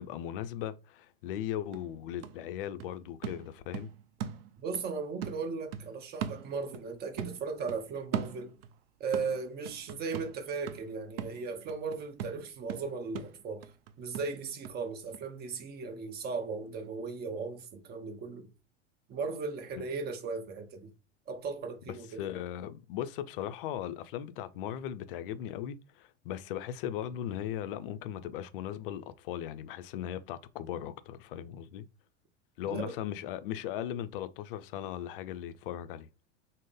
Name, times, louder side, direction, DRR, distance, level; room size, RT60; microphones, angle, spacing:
voice 1, 0.0-3.9 21.9-31.9 32.6-36.1, left 11 dB, 50° left, 0.5 m, -38 dB
sound 1, 1.3-1.4 1.7-4.9 5.2-6.9 7.2-8.8 9.1-14.8 15.1-15.2, right 9 dB, 55° right, 0.5 m, -40 dB
voice 2, 4.6-8.5 9.0-13.7 14.0-18.5 19.1-20.9 21.3-22.3 32.7-33.0, right 4 dB, 25° right, 0.9 m, -37 dB
3.6 x 2.0 x 3.6 m
figure-of-eight pair, 80°, 36 cm